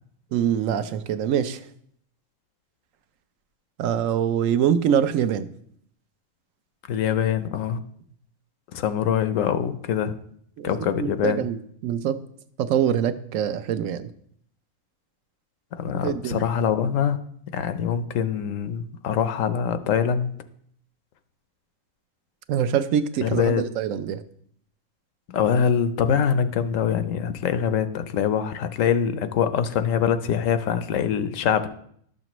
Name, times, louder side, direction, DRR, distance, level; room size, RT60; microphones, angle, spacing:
voice 1, 0.3-1.7 3.8-5.5 10.6-12.2 12.6-14.1 16.0-16.4 22.5-24.2, right 9 dB, 85° right, 12 dB, 1.0 m, -24 dB
voice 2, 6.9-7.8 8.7-10.1 10.6-11.4 15.8-17.2 17.5-20.3 23.2-23.6 25.3-31.7, left 8 dB, 90° left, 11 dB, 1.0 m, -24 dB
12.0 x 6.7 x 3.0 m, 0.67 s
omnidirectional pair, 1.3 m